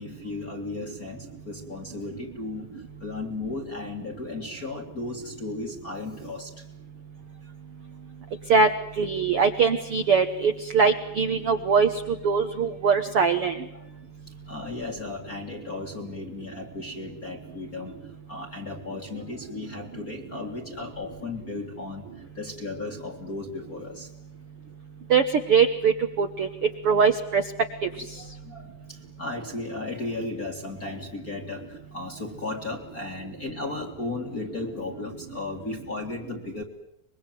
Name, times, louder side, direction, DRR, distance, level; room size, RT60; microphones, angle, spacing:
voice 1, 0.0-2.7 3.0-6.5 13.7-13.9 14.5-17.9 18.3-22.0 22.3-24.1 28.1-36.6, left 3 dB, 35° left, 3 dB, 1.7 m, -35 dB
voice 2, 9.0-11.9 12.2-13.6 25.1-25.2 25.5-26.5 26.8-27.4 27.8-27.9, right 5 dB, 60° right, 7 dB, 1.5 m, -21 dB
25.0 x 22.0 x 9.2 m, 0.79 s
omnidirectional pair, 4.2 m